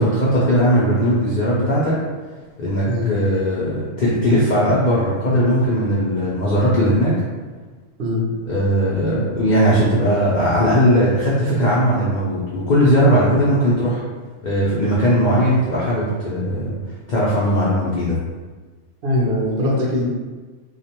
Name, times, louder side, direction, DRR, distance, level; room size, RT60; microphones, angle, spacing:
voice 1, 0.0-2.0 2.6-7.2 8.5-14.0 14.4-16.7 17.1-18.2, equal, 85° left, -8 dB, 0.4 m, -18 dB
voice 2, 19.0-20.1, left 1 dB, 60° right, -4 dB, 0.6 m, -21 dB
2.4 x 2.1 x 2.8 m, 1.3 s
omnidirectional pair, 1.4 m